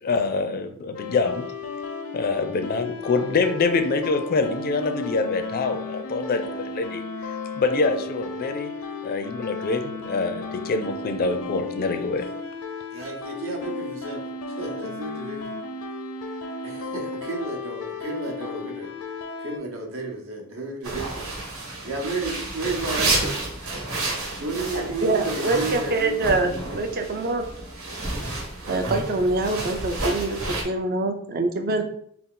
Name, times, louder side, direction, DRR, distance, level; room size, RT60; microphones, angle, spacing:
voice 1, 0.0-1.4 2.1-7.0 7.5-8.7 9.0-12.3, left 3 dB, 45° left, 7 dB, 0.4 m, -25 dB
sound 1, 0.9-19.6, left 3 dB, 90° left, 0.6 m, -34 dB
voice 2, 12.9-15.5 16.6-18.9 19.4-21.2 21.8-23.2 24.4-26.2 26.5-26.8, right 3 dB, 65° right, 0 dB, 0.9 m, -32 dB
sound 2, 20.8-30.6, right 2 dB, 90° right, 1.4 m, -30 dB
voice 3, 25.0-27.5 28.7-31.8, right 2 dB, 45° right, 6 dB, 0.5 m, -25 dB
3.8 x 2.4 x 3.7 m, 0.67 s
head